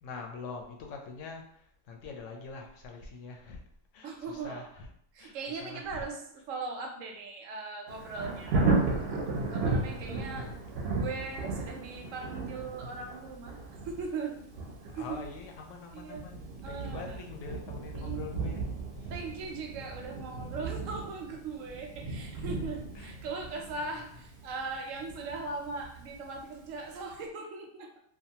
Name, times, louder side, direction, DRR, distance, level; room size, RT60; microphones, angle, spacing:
voice 1, 0.0-3.6 3.9-4.9 5.2-6.1 14.9-19.9 22.4-22.5 22.9-23.7, left 4 dB, 80° left, 2 dB, 0.9 m, -45 dB
voice 2, 4.0-4.7 5.1-6.2 6.5-10.5 10.9-13.6 13.8-14.4 14.8-15.2 15.9-16.2 16.6-17.2 17.9-18.2 19.1-27.9, right 4 dB, 85° right, 3 dB, 1.0 m, -39 dB
Thunder, 7.9-26.6 27.1-27.2, right 3 dB, 60° right, 0.7 m, -35 dB
2.6 x 2.2 x 2.8 m, 0.70 s
omnidirectional pair, 1.3 m